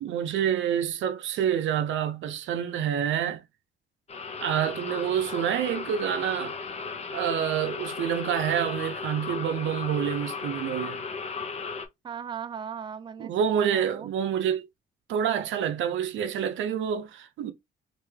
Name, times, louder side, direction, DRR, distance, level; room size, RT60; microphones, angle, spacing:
voice 1, 0.0-3.4 4.4-6.5 7.1-11.0 13.2-14.7 15.1-17.5, right 9 dB, 80° right, 0.6 m, -27 dB
sound 1, 4.1-11.9, left 4 dB, 35° left, 0.8 m, -35 dB
voice 2, 12.0-14.1, right 7 dB, 25° right, 0.4 m, -38 dB
3.4 x 2.6 x 3.2 m
cardioid pair, 90°, 20 cm